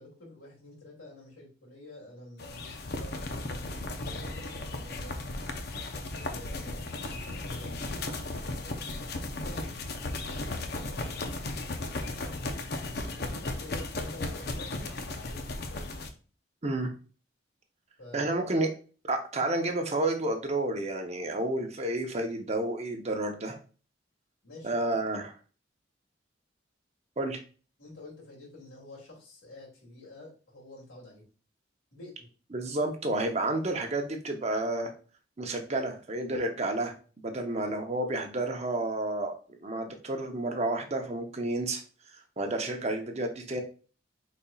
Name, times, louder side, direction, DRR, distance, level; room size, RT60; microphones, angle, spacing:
voice 1, 0.0-5.2 6.3-8.2 9.2-9.8 10.2-10.6 11.0-12.6 13.3-15.9 18.0-18.3 24.4-25.0 27.8-31.2 31.9-32.3 37.3-37.7 42.4-42.6, left 1 dB, 90° left, -3 dB, 2.4 m, -49 dB
sound 1, 2.4-16.1, left 2 dB, 55° left, 0.6 m, -36 dB
voice 2, 18.1-18.7 19.1-23.6 24.6-25.3 27.2-27.4 32.5-34.9 35.4-41.8 42.4-43.6, right 2 dB, 35° right, 5 dB, 0.7 m, -30 dB
5.3 x 4.1 x 2.3 m, 0.37 s
head